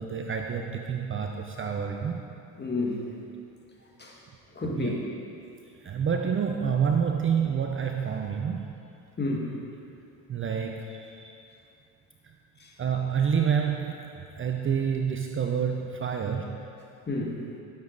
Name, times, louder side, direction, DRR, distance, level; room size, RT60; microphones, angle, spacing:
voice 1, 0.0-2.2 4.6-4.9 5.8-8.7 10.3-11.4 12.2-12.4 12.8-16.6, right 7 dB, 30° right, 3 dB, 0.7 m, -28 dB
voice 2, 2.6-3.0 4.0-4.1 4.5-5.1 9.2-9.5 12.6-12.7 17.1-17.4, left 2 dB, 25° left, -2 dB, 2.1 m, -30 dB
11.5 x 7.1 x 4.1 m, 2.6 s
hypercardioid pair, 70°, 40 cm